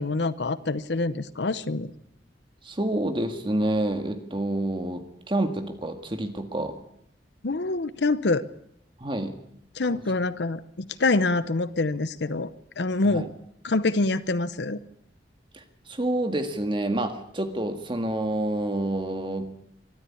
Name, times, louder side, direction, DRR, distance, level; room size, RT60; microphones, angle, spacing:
voice 1, 0.0-1.9 7.4-8.4 9.7-12.5 12.8-13.3 13.6-14.8, left 3 dB, 75° left, 16 dB, 0.8 m, -25 dB
voice 2, 2.6-6.8 9.0-9.3 9.9-10.0 13.1-13.3 15.5-19.4, right 1 dB, 30° right, 7 dB, 1.8 m, -28 dB
23.5 x 13.0 x 8.5 m, 0.75 s
head